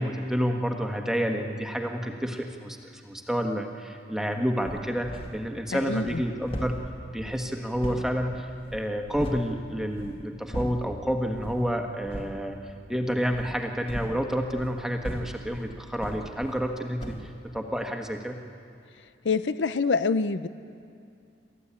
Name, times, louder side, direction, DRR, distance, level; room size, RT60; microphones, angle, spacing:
voice 1, 0.0-2.8 3.0-6.8 7.1-18.4, equal, 5° right, 3 dB, 1.4 m, -29 dB
sound 1, 4.6-5.5 5.9-9.5 9.9-11.0 11.3-11.7 12.0-12.4 13.3-16.7 17.0-17.3, equal, 30° left, 1.9 m, -38 dB
voice 2, 19.2-20.5, left 4 dB, 85° left, 13 dB, 0.6 m, -25 dB
28.0 x 14.0 x 8.6 m, 2.5 s
head